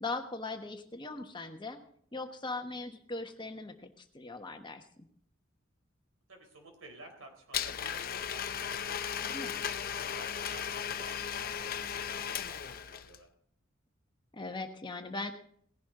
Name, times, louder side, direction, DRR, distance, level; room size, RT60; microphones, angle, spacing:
voice 1, 0.0-1.8 2.1-4.9 9.2-9.5 14.3-15.3, left 3 dB, 25° left, 6 dB, 1.2 m, -39 dB
voice 2, 6.3-8.8 9.5-13.3, right 2 dB, 80° right, 4 dB, 3.9 m, -53 dB
Domestic sounds home sounds, 7.5-13.2, left 8 dB, 45° left, 0.6 m, -36 dB
18.5 x 11.0 x 3.8 m, 0.63 s
head